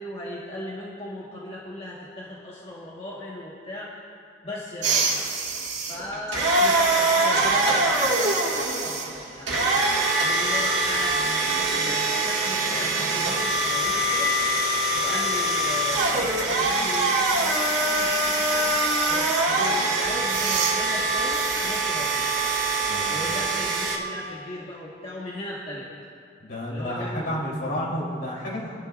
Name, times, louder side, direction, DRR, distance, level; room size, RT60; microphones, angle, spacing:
voice 1, 0.0-3.9 4.4-5.2 5.9-9.5 10.2-14.3 15.0-22.3 23.1-25.9 26.7-27.4, left 1 dB, 35° left, -6 dB, 1.6 m, -37 dB
sound 1, 4.8-24.0, right 2 dB, 85° right, 2.0 m, -23 dB
voice 2, 22.9-23.3 26.4-28.8, equal, 65° left, -5 dB, 3.7 m, -31 dB
23.0 x 11.5 x 2.5 m, 2.4 s
head